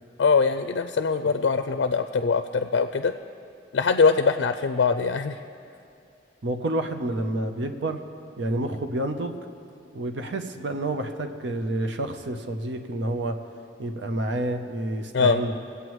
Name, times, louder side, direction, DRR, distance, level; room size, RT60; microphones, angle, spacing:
voice 1, 0.2-3.1 3.7-5.4 15.1-15.4, left 5 dB, 85° left, 8 dB, 0.4 m, -22 dB
voice 2, 6.4-8.0 8.4-9.3 9.9-13.4 13.8-15.6, right 1 dB, 90° right, 6 dB, 0.8 m, -29 dB
23.0 x 8.2 x 3.1 m, 2.5 s
head